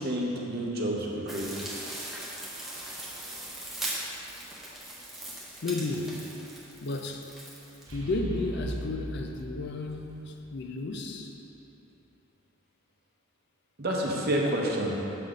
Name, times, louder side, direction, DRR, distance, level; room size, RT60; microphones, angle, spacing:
voice 1, 0.0-1.8 13.8-15.0, right 1 dB, 45° right, 0.8 m, -29 dB
sound 1, 1.3-7.9, right 1 dB, ahead, 0.8 m, -39 dB
sound 2, 2.5-3.4 7.9-10.9 11.1-11.2, right 1 dB, 65° right, 1.0 m, -40 dB
voice 2, 5.6-6.3 6.8-7.3 7.9-11.3, left 2 dB, 50° left, 0.4 m, -33 dB
6.7 x 4.0 x 4.8 m
head